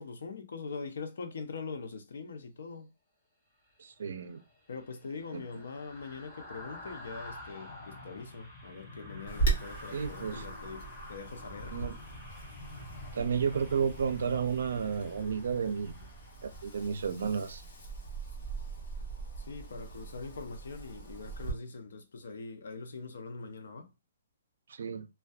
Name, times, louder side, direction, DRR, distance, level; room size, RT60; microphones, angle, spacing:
voice 1, 0.0-2.9 4.7-11.8 19.4-23.9, left 4 dB, 70° left, 0.6 m, -43 dB
voice 2, 3.8-4.4 5.3-5.4 9.9-10.4 11.7-12.0 13.1-16.1 16.4-17.6 24.7-25.1, right 6 dB, 70° right, 0.5 m, -32 dB
sound 1, 4.1-17.4 17.7-17.9, left 2 dB, 15° left, 0.9 m, -48 dB
Wind, 9.3-21.5, right 4 dB, 45° left, 1.1 m, -39 dB
2.5 x 2.2 x 2.3 m
hypercardioid pair, 170°, 0 cm